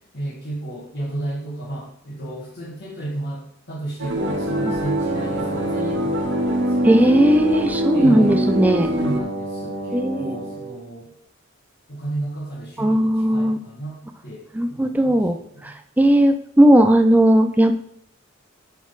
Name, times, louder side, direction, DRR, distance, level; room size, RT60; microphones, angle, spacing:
voice 1, 0.1-7.4 7.9-8.4 8.9-11.1 11.9-15.7, right 2 dB, 55° left, -5 dB, 2.0 m, -33 dB
sound 1, 4.0-9.2, equal, 65° right, 0.8 m, -24 dB
Wind instrument woodwind instrument, 4.2-10.8, right 1 dB, 40° right, 1.3 m, -29 dB
voice 2, 6.8-8.9 9.9-10.4 12.8-13.6 14.5-15.4 15.6-17.7, right 1 dB, 10° right, 6 dB, 0.4 m, -17 dB
11.0 x 4.1 x 3.9 m, 0.66 s
head